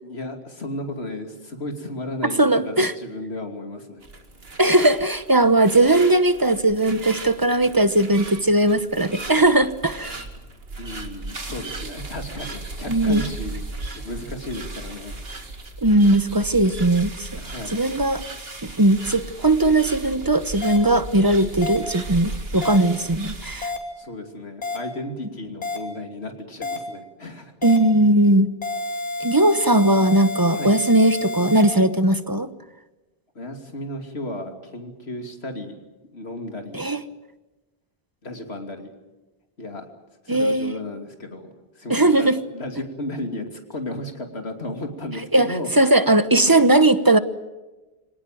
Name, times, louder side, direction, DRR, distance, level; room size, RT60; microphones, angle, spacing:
voice 1, 0.0-4.0 10.8-13.7 13.9-15.2 17.3-17.8 24.0-27.5 30.5-30.8 33.3-35.8 36.1-36.9 38.2-38.9 39.6-39.9 40.2-45.7, left 1 dB, 90° left, 4 dB, 3.1 m, -34 dB
voice 2, 2.4-2.9 4.6-10.1 12.9-13.2 15.8-17.3 17.7-18.2 18.8-23.7 27.6-28.5 29.2-32.5 36.7-37.0 40.3-40.8 41.9-42.4 45.3-47.2, right 1 dB, 20° right, 12 dB, 1.0 m, -18 dB
sound 1, 4.0-23.7, right 2 dB, 70° right, 2.4 m, -36 dB
sound 2, 20.6-20.8 21.6-21.8 22.6-22.8 23.6-23.8 24.6-24.8 25.6-25.8 26.6-26.8 27.6-27.8 28.6-31.6, left 3 dB, 40° left, 3.0 m, -29 dB
25.0 x 18.0 x 9.1 m, 1.1 s
omnidirectional pair, 1.0 m